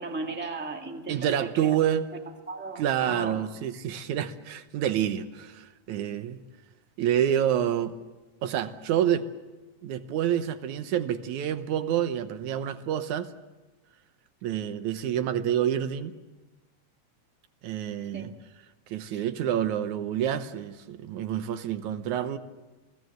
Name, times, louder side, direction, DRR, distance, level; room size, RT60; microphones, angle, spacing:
voice 1, 0.0-1.7 2.5-3.4 18.1-18.3 19.1-19.2, right 3 dB, 5° right, 1.5 m, -36 dB
voice 2, 1.1-2.0 2.8-6.4 7.0-8.0 8.4-9.3 9.8-13.3 14.4-16.2 17.6-18.3 18.9-22.4, right 10 dB, 85° right, 2.4 m, -28 dB
28.5 x 18.5 x 7.9 m
omnidirectional pair, 3.3 m